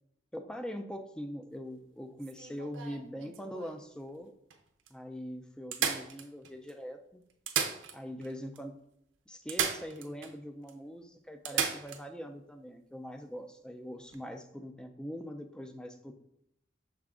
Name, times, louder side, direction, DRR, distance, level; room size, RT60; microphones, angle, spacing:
voice 1, 0.3-4.3 4.9-7.2 7.9-8.8 9.3-16.1, equal, 5° left, 6 dB, 0.3 m, -42 dB
sound 1, 2.2-3.8 4.5-4.6 4.9-5.0 5.7-6.7 7.3-8.3 8.6-8.7 9.5-10.3 10.7-10.8 11.4-12.0 14.0-14.2, right 7 dB, 90° right, 0.5 m, -35 dB
5.8 x 2.4 x 3.6 m, 0.78 s
head